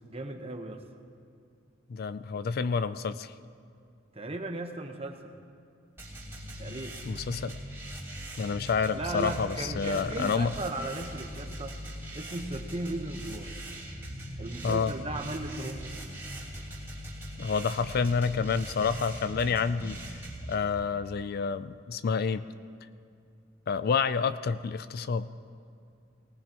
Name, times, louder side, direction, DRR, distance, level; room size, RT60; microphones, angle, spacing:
voice 1, 0.1-0.8 4.1-5.3 6.6-7.0 8.9-11.8 12.1-13.6 14.4-15.9, right 2 dB, 30° right, 4 dB, 1.0 m, -36 dB
voice 2, 1.9-3.3 7.1-7.5 8.4-10.5 14.6-14.9 17.4-20.2 20.5-22.4 23.7-25.3, left 5 dB, 55° left, 14 dB, 0.4 m, -29 dB
sound 1, 6.0-20.6, right 1 dB, 10° right, 2.8 m, -41 dB
19.5 x 18.5 x 3.0 m, 2.3 s
head